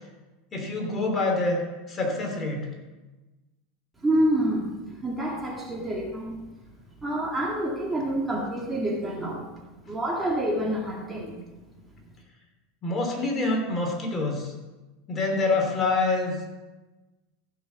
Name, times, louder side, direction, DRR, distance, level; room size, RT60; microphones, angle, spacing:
voice 1, 0.5-1.6 1.9-2.7 12.8-14.5 15.1-16.5, left 3 dB, 25° left, 1 dB, 3.2 m, -26 dB
voice 2, 4.0-6.5 7.0-9.5 9.9-11.4, right 1 dB, 10° right, -2 dB, 2.2 m, -27 dB
14.5 x 6.3 x 7.1 m, 1.2 s
supercardioid pair, 120°, 0 cm